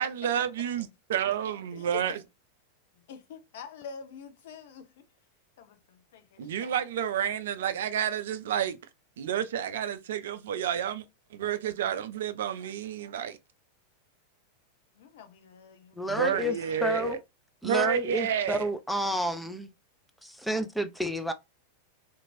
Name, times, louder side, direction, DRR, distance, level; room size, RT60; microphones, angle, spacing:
voice 1, 0.0-2.2 6.4-8.8 9.2-11.0 11.3-13.4 16.1-17.2 17.6-18.7, right 9 dB, 60° right, 0.4 m, -30 dB
voice 2, 3.0-5.1 5.6-6.8 15.0-16.8, left 7 dB, 55° left, 0.6 m, -46 dB
voice 3, 15.9-17.2 17.6-19.7 20.2-21.3, equal, ahead, 0.4 m, -30 dB
2.9 x 2.6 x 2.6 m
figure-of-eight pair, 90°, 0 cm